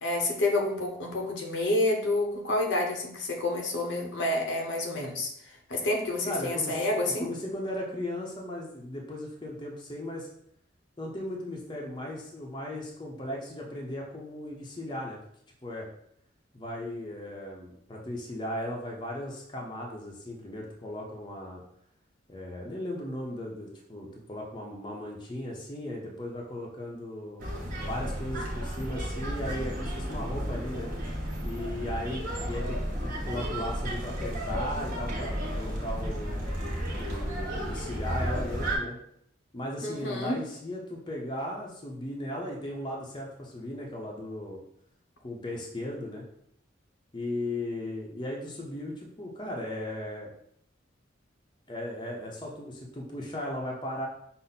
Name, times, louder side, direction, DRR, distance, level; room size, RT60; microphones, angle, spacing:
voice 1, 0.0-5.3 5.7-7.3 39.8-40.4, left 2 dB, 70° left, 1 dB, 0.8 m, -28 dB
voice 2, 6.2-6.9 7.2-10.3 11.0-15.2 15.6-15.9 16.5-21.6 22.3-27.4 27.9-30.9 31.4-36.5 36.9-39.0 39.5-44.6 45.2-46.3 47.1-50.3 51.7-54.1, left 1 dB, 25° left, -1 dB, 0.7 m, -37 dB
sound 1, 27.4-38.8, equal, 40° right, 1.1 m, -33 dB
5.4 x 2.0 x 4.0 m, 0.68 s
head